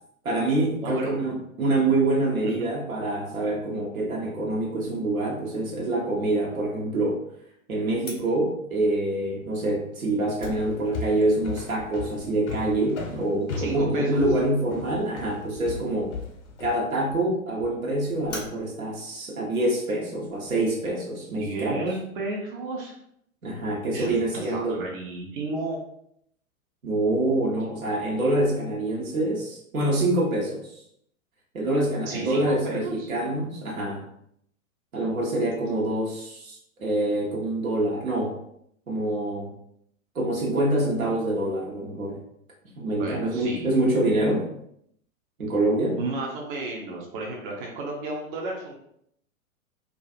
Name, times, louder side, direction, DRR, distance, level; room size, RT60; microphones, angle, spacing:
voice 1, 0.2-7.2 7.7-16.1 16.6-21.8 23.4-24.8 26.8-30.8 31.5-34.0 34.9-38.4 38.9-39.5 40.1-42.2 42.8-44.5 45.4-46.0, right 2 dB, 75° right, -2 dB, 0.9 m, -26 dB
voice 2, 0.8-1.1 2.4-2.5 13.6-14.2 21.4-22.9 23.9-25.8 32.1-33.1 42.9-43.7 46.0-48.7, right 2 dB, 40° right, -1 dB, 0.5 m, -32 dB
Fire, 8.0-20.5, left 3 dB, 15° left, 0.4 m, -47 dB
sound 1, 10.6-16.8, left 4 dB, 55° left, 0.6 m, -36 dB
2.4 x 2.3 x 2.4 m, 0.72 s
figure-of-eight pair, 100°, 42 cm